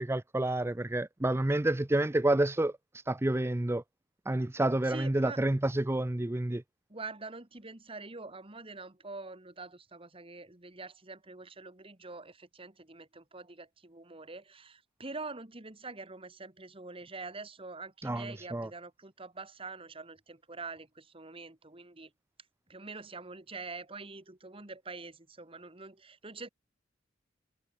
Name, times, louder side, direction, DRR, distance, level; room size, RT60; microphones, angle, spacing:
voice 1, 0.0-3.8 4.3-6.6 18.0-18.7, right 1 dB, 15° right, 0.5 m, -29 dB
voice 2, 4.8-5.4 6.9-22.1 22.7-26.5, right 3 dB, 30° right, 1.9 m, -45 dB
head